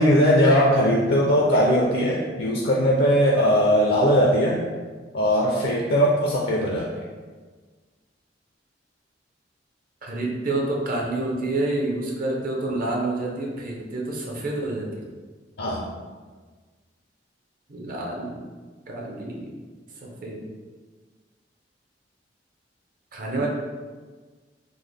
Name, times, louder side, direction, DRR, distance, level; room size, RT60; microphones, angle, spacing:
voice 1, 0.0-4.6 5.1-6.9 15.6-15.8, equal, 60° left, -3 dB, 0.4 m, -19 dB
voice 2, 10.0-15.1 17.7-18.4 18.9-19.5 20.0-20.5 23.1-23.5, right 2 dB, 50° right, -1 dB, 0.6 m, -28 dB
3.7 x 2.0 x 3.2 m, 1.4 s
head